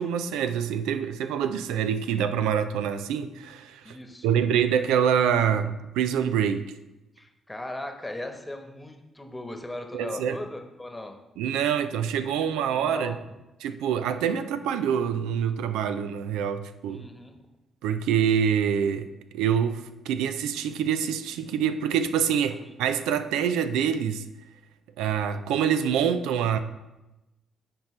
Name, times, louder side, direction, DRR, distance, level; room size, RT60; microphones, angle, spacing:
voice 1, 0.0-4.0 4.2-6.6 9.9-10.4 11.4-13.1 13.6-17.1 17.8-19.1 19.3-24.2 25.0-26.6, right 8 dB, 85° right, 0.4 m, -26 dB
voice 2, 3.8-4.4 7.2-11.2 12.7-13.2 16.9-17.4 22.5-22.6, left 1 dB, 15° left, 1.1 m, -38 dB
9.5 x 4.5 x 3.2 m
supercardioid pair, 55°, 0 cm